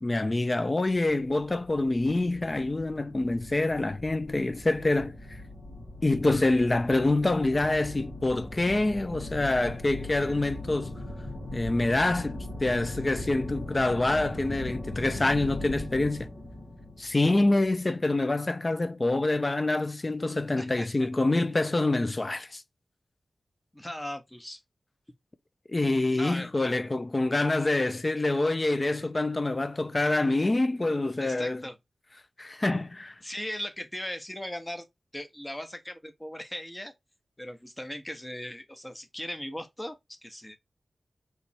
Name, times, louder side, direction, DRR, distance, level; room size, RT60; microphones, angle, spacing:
voice 1, 0.0-5.2 6.0-10.9 11.5-16.3 17.0-22.6 25.7-31.6 32.4-33.1, left 2 dB, 30° left, 0.4 m, -26 dB
sound 1, 0.9-17.9, left 1 dB, 90° left, 1.6 m, -40 dB
voice 2, 20.6-21.1 23.7-24.6 26.1-26.5 31.2-31.8 33.2-34.8 35.1-36.9 37.4-40.6, left 1 dB, 15° left, 0.9 m, -38 dB
3.3 x 3.1 x 4.2 m
wide cardioid pair, 115°, 0 cm